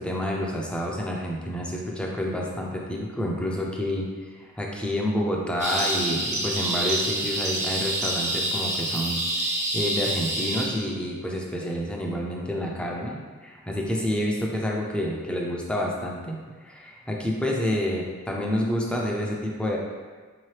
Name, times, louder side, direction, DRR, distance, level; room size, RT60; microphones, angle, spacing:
voice 1, 0.0-4.1 4.3-19.8, left 1 dB, 5° left, -2 dB, 0.4 m, -29 dB
sound 1, 5.6-10.7, right 1 dB, 35° right, 0.7 m, -27 dB
3.9 x 2.8 x 3.2 m, 1.5 s
head